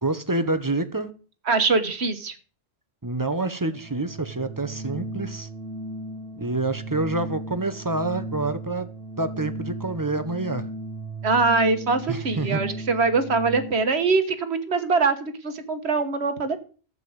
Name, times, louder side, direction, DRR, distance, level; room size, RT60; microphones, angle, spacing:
voice 1, 0.0-1.1 3.0-5.5 6.4-8.9 9.2-10.7 12.1-12.6, right 2 dB, 20° right, 11 dB, 0.9 m, -27 dB
voice 2, 1.5-2.3 11.2-16.6, right 4 dB, 90° right, 9 dB, 1.6 m, -23 dB
Organ, 3.7-14.0, right 2 dB, 70° right, 1.1 m, -36 dB
14.0 x 5.5 x 7.9 m, 0.39 s
omnidirectional pair, 1.1 m